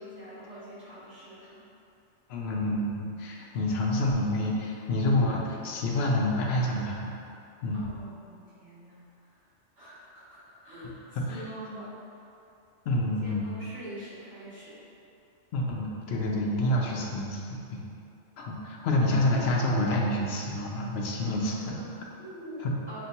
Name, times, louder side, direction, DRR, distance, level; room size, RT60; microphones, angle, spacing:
voice 1, 0.0-1.6 7.7-9.0 9.8-11.0 11.2-12.3 13.2-14.8 21.2-23.0, equal, 70° right, -11 dB, 1.7 m, -44 dB
voice 2, 2.3-7.2 7.6-7.8 11.3-11.4 12.9-13.5 15.5-17.4 17.7-17.8 18.4-21.5 22.6-22.7, left 1 dB, 65° left, -2 dB, 0.8 m, -28 dB
5.7 x 2.2 x 2.8 m, 2.6 s
omnidirectional pair, 1.3 m